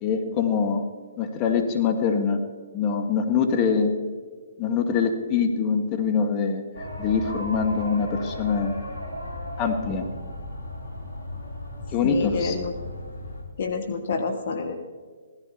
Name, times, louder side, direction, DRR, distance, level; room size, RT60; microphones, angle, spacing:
voice 1, 0.0-0.8 1.2-2.4 2.7-3.9 4.6-6.6 7.0-8.8 9.6-10.1 11.9-12.6, left 6 dB, 30° left, 5 dB, 1.6 m, -24 dB
sound 1, 6.7-13.4, left 1 dB, 80° left, 2.9 m, -35 dB
voice 2, 12.0-12.7 13.6-14.7, left 4 dB, 55° left, 6 dB, 1.2 m, -28 dB
16.0 x 13.5 x 4.2 m, 1.5 s
figure-of-eight pair, 130°, 0 cm